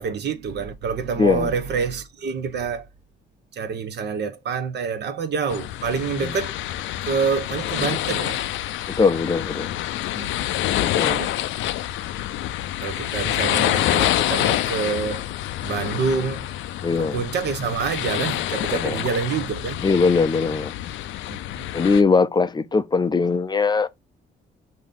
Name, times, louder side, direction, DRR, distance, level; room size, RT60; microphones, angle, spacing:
voice 1, 0.0-2.9 3.5-6.5 7.1-8.4 10.2-10.4 10.7-11.4 12.8-15.2 15.6-16.5 17.0-19.8 21.3-21.7, right 5 dB, 60° right, 0.8 m, -27 dB
voice 2, 1.2-1.5 9.0-9.7 10.8-11.2 16.8-17.2 18.8-19.0 19.8-20.7 21.7-23.9, left 4 dB, 20° left, 0.4 m, -20 dB
sound 1, 5.5-22.0, left 13 dB, 80° left, 0.4 m, -27 dB
5.2 x 2.7 x 3.8 m
cardioid pair, 90°, 20 cm